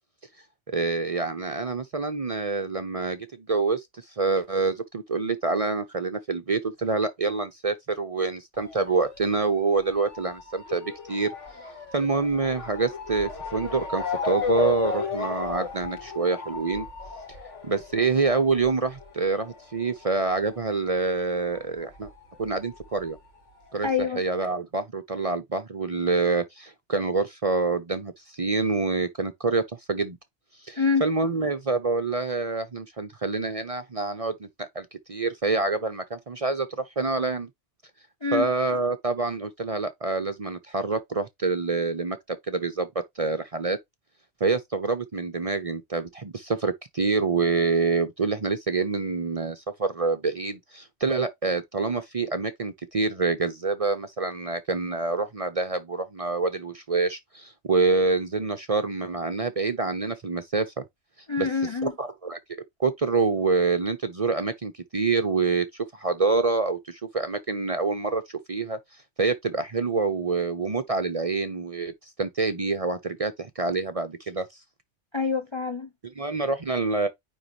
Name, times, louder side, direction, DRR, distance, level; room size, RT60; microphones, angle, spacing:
voice 1, 0.7-11.3 11.9-16.9 17.6-22.1 22.4-23.2 23.7-30.2 30.6-36.7 37.0-37.5 38.3-42.9 43.2-43.8 44.4-60.8 61.4-61.5 61.8-62.4 62.8-68.8 69.2-71.9 72.2-74.5 76.0-77.1, right 4 dB, 40° right, 0.6 m, -26 dB
Motor vehicle (road) / Siren, 8.6-21.6 21.8-23.0 23.7-23.8 24.0-24.1, left 5 dB, 85° left, 2.1 m, -35 dB
voice 2, 23.8-24.2 30.8-31.0 38.2-38.5 61.3-61.9 75.1-75.9, left 5 dB, 35° left, 0.5 m, -26 dB
9.4 x 3.5 x 3.0 m
omnidirectional pair, 1.2 m